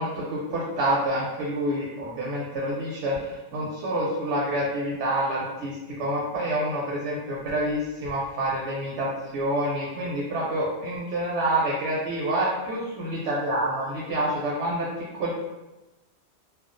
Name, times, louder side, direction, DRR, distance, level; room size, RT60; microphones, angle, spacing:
voice 1, 0.0-14.9 15.1-15.3, right 1 dB, 80° right, -5 dB, 0.9 m, -27 dB
2.3 x 2.2 x 2.4 m, 1.0 s
omnidirectional pair, 1.1 m